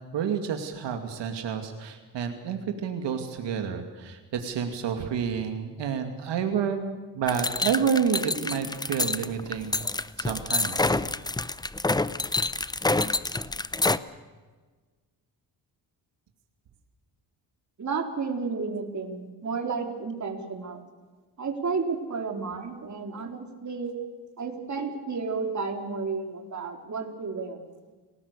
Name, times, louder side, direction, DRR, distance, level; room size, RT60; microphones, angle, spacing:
voice 1, 0.1-10.9, right 7 dB, 90° right, 5 dB, 2.5 m, -29 dB
sound 1, 7.3-14.0, left 2 dB, 10° left, 0.7 m, -27 dB
voice 2, 17.8-20.8 21.4-24.0 24.4-27.7, right 4 dB, 40° right, 3 dB, 4.1 m, -32 dB
29.0 x 19.5 x 6.8 m, 1.4 s
cardioid pair, 115°, 42 cm